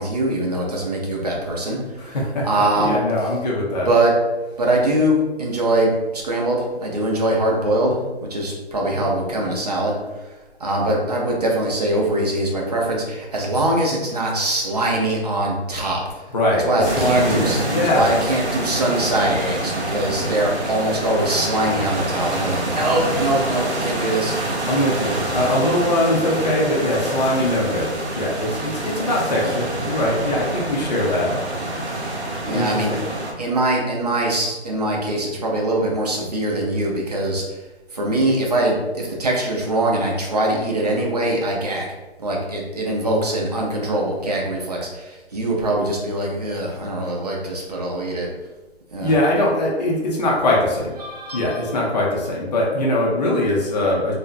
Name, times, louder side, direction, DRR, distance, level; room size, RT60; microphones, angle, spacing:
voice 1, 0.0-1.8 2.0-2.2 2.4-3.0 3.9-4.1 4.6-8.0 8.3-10.3 10.6-16.0 16.6-17.6 17.9-24.3 29.4-29.5 32.4-33.0 33.4-37.6 37.9-41.9 42.2-48.3 48.9-49.1 51.0-51.7, right 1 dB, 40° right, -2 dB, 0.5 m, -22 dB
voice 2, 2.0-3.9 16.3-18.1 24.7-31.3 31.9-32.0 32.5-33.1 49.0-51.0 51.3-54.1, left 1 dB, 40° left, -3 dB, 0.5 m, -21 dB
sound 1, 16.8-33.3, right 1 dB, 85° right, 0.7 m, -26 dB
2.4 x 2.1 x 2.4 m, 1.1 s
hypercardioid pair, 160°, 33 cm